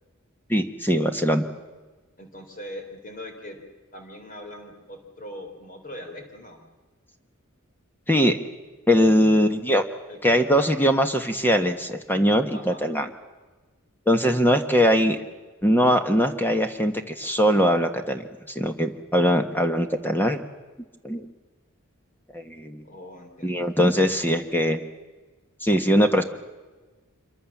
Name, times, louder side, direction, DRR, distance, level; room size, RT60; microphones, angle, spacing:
voice 1, 0.5-1.4 8.1-8.4 8.9-9.8 10.2-13.1 14.1-15.2 15.6-18.2 18.5-20.4 21.0-21.3 22.3-22.8 23.4-24.8 25.6-26.2, equal, 10° left, 7 dB, 1.4 m, -21 dB
voice 2, 2.2-3.6 3.9-6.6 10.1-10.8 12.5-12.9 22.8-23.6, left 1 dB, 40° left, 4 dB, 3.8 m, -41 dB
26.5 x 23.5 x 7.3 m, 1.3 s
head